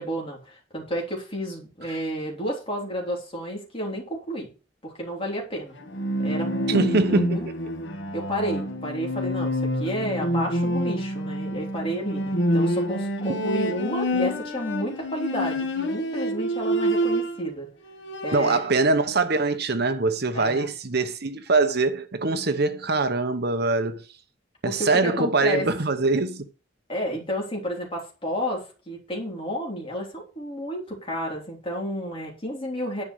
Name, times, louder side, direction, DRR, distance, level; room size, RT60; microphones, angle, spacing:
voice 1, 0.0-4.5 4.8-5.8 6.2-7.5 8.1-17.7 18.2-18.6 20.3-20.7 24.6-25.6 26.9-33.0, equal, 30° left, 3.4 m, -31 dB
Bowed string instrument, 5.8-17.5 17.9-18.7, equal, 80° left, 1.5 m, -27 dB
voice 2, 6.7-7.3 13.3-13.4 18.3-24.0 24.6-26.5, right 3 dB, 60° right, 1.0 m, -23 dB
11.0 x 5.3 x 6.3 m
head